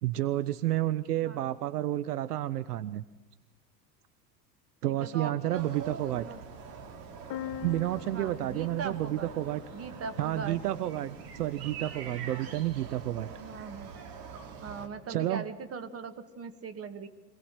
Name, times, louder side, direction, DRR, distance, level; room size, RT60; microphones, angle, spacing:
voice 1, 0.0-3.0 4.8-6.3 7.6-9.6 10.2-13.3 15.1-15.4, right 14 dB, 70° right, 15 dB, 0.8 m, -30 dB
voice 2, 4.9-6.4 8.1-9.3 9.7-10.6 13.4-13.9 14.6-17.1, right 5 dB, 30° right, 10 dB, 2.1 m, -40 dB
sound 1, 5.5-14.9, right 6 dB, 45° right, 2.9 m, -45 dB
sound 2, 7.3-11.0, left 10 dB, 55° left, 1.4 m, -44 dB
25.5 x 18.5 x 7.5 m, 1.2 s
figure-of-eight pair, 80°, 48 cm